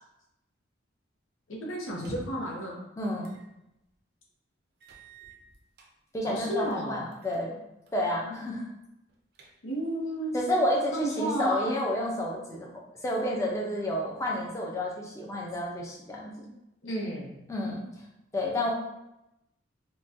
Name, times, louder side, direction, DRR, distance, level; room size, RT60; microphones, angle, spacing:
voice 1, 1.5-2.8 6.2-7.0 9.6-10.4 10.9-11.8 16.8-17.4, right 1 dB, 85° left, -2 dB, 0.8 m, -32 dB
sound 1, 1.9-2.5 3.2-3.5 3.9-4.0 4.8-5.9 6.4-6.8 7.1-7.4 7.9-8.2 8.5-8.6 9.1-9.9, right 2 dB, 55° right, 0.4 m, -48 dB
voice 2, 3.0-3.4 6.1-7.6 7.9-8.7 10.3-12.7 13.0-16.5 17.5-17.8 18.3-18.7, left 1 dB, 15° left, -2 dB, 0.5 m, -30 dB
3.7 x 2.2 x 2.6 m, 0.88 s
head